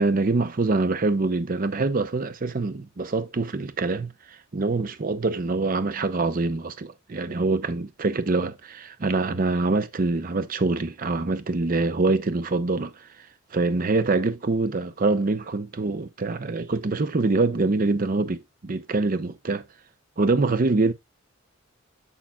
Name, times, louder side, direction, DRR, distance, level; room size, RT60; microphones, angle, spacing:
voice 1, 0.0-13.1 13.5-19.6 20.2-20.9, right 3 dB, 40° right, 0.6 m, -25 dB
7.1 x 6.4 x 2.3 m
head